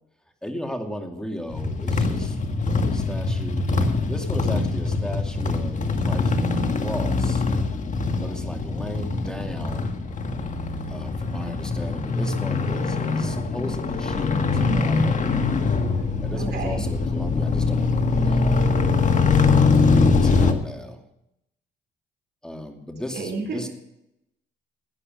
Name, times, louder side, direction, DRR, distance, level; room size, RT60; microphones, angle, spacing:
voice 1, 0.4-2.4 2.8-3.7 4.1-7.4 8.2-10.0 10.9-15.3 16.2-18.8 19.8-21.0 22.4-23.7, equal, 5° left, 4 dB, 2.5 m, -35 dB
sound 1, 1.5-20.5, left 4 dB, 40° left, 1.8 m, -23 dB
voice 2, 15.9-16.8 23.1-23.7, right 4 dB, 55° right, 2 dB, 3.5 m, -33 dB
17.0 x 10.0 x 5.3 m, 0.83 s
cardioid pair, 90°, 20 cm